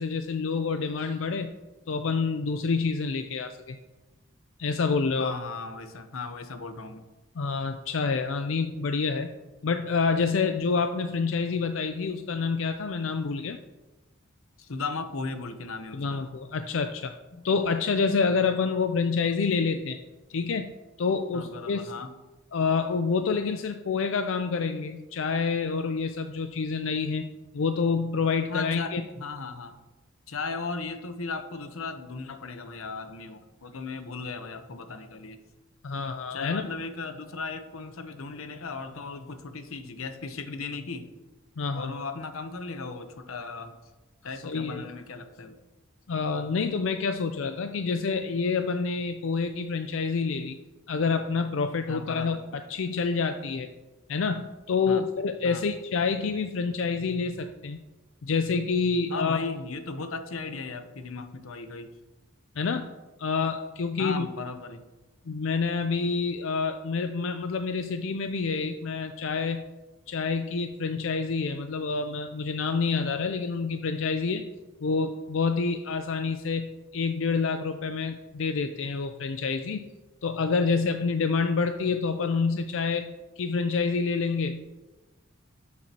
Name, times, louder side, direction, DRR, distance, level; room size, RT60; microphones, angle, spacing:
voice 1, 0.0-1.5 1.9-3.8 4.6-5.3 7.4-9.3 9.6-13.6 15.9-17.1 17.4-20.0 20.3-20.7 21.0-21.8 22.5-27.3 27.5-29.0 35.8-36.7 41.6-41.9 44.4-44.8 46.1-50.6 50.9-52.4 52.7-53.7 54.1-57.8 58.2-59.4 62.6-62.9 63.2-64.3 65.3-69.6 70.1-74.5 74.8-79.8 80.2-84.6, left 4 dB, 65° left, 8 dB, 0.4 m, -27 dB
voice 2, 5.2-7.0 14.6-16.2 17.3-17.4 21.3-22.1 28.5-29.8 30.3-35.4 36.3-41.1 41.7-43.7 44.2-45.6 51.9-52.4 54.9-55.0 55.4-55.6 59.1-61.9 64.0-64.8, left 4 dB, 85° left, 8 dB, 0.8 m, -36 dB
12.0 x 7.3 x 2.9 m, 1.1 s
head